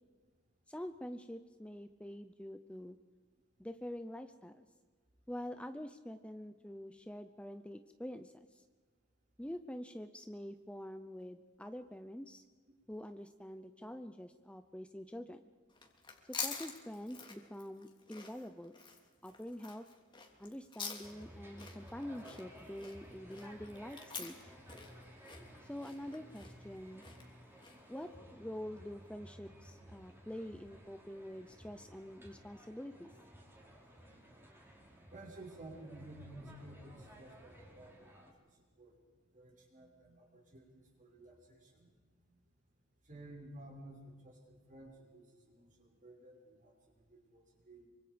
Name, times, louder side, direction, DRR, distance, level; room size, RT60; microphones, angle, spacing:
voice 1, 0.7-3.0 3.6-4.7 5.3-8.6 9.4-12.4 12.9-15.4 16.3-18.7 19.2-19.8 20.4-24.5 25.6-27.0 27.9-33.1, equal, 5° left, 8 dB, 0.7 m, -46 dB
sound 1, 15.7-27.9, left 5 dB, 25° left, 3.0 m, -47 dB
sound 2, 21.0-38.3, equal, 10° right, 4.3 m, -56 dB
voice 2, 35.1-38.1 38.8-38.9 39.3-41.9 42.3-42.4 43.1-47.9, right 1 dB, 40° right, 0 dB, 5.6 m, -54 dB
26.0 x 24.5 x 5.2 m, 1.5 s
head